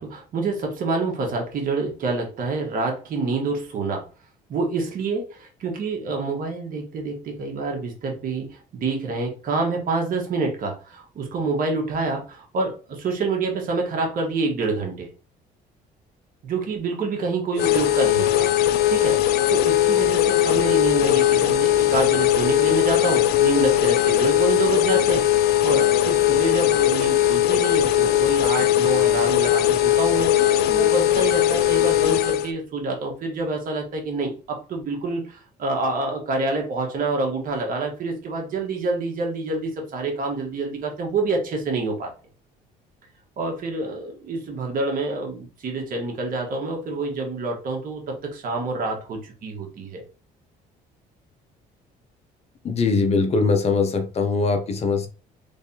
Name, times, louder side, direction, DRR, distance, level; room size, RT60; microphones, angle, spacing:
voice 1, 0.0-4.0 4.5-15.1 16.4-18.5 18.9-42.1 43.4-50.0, right 3 dB, 55° right, 1.4 m, -27 dB
sound 1, 17.6-32.5, left 12 dB, 70° left, 0.4 m, -19 dB
voice 2, 52.6-55.1, left 4 dB, 40° left, 0.7 m, -21 dB
3.3 x 3.3 x 2.8 m
cardioid pair, 110°, 17 cm